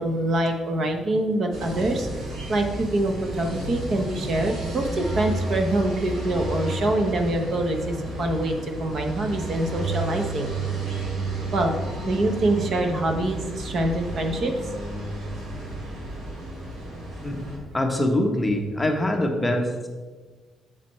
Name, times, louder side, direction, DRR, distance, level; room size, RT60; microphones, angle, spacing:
voice 1, 0.0-10.5 11.5-11.7 12.1-14.5, right 1 dB, 40° right, 4 dB, 0.9 m, -25 dB
sound 1, 1.5-17.6, right 2 dB, 65° right, 2.5 m, -32 dB
voice 2, 17.2-19.9, left 1 dB, 10° left, 2 dB, 0.9 m, -24 dB
9.0 x 7.5 x 3.1 m, 1.3 s
cardioid pair, 150°, 0 cm